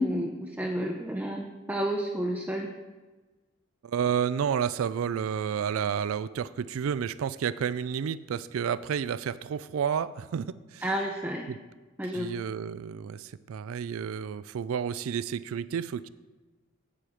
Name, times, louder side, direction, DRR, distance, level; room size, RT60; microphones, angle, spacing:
voice 1, 0.0-2.7 10.8-11.5 12.0-12.4, equal, 10° right, 0 dB, 0.6 m, -31 dB
voice 2, 3.8-10.5 10.7-10.9 11.5-11.6 12.1-16.1, right 7 dB, 90° right, 16 dB, 0.3 m, -30 dB
8.5 x 7.6 x 6.4 m, 1.2 s
head